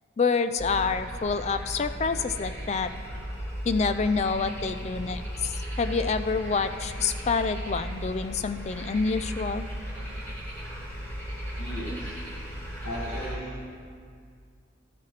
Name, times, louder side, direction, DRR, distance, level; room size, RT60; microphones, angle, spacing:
voice 1, 0.2-2.9 3.6-9.7, left 4 dB, 35° left, 11 dB, 0.3 m, -27 dB
sound 1, 0.6-13.3, equal, 15° left, 2.3 m, -36 dB
voice 2, 11.6-12.2 12.8-13.6, equal, 75° left, -9 dB, 2.1 m, -36 dB
13.0 x 9.4 x 3.3 m, 2.1 s
head